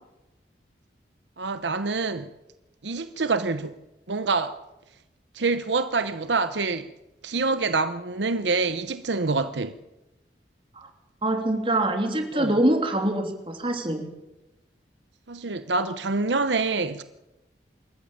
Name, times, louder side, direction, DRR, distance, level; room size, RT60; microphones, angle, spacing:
voice 1, 1.4-2.3 2.8-3.8 4.1-4.6 5.3-6.9 7.2-9.8 12.3-12.6 15.3-17.0, right 3 dB, 80° right, 0.9 m, -26 dB
voice 2, 11.2-14.1, right 1 dB, 30° right, 3.1 m, -24 dB
25.0 x 14.0 x 8.8 m
head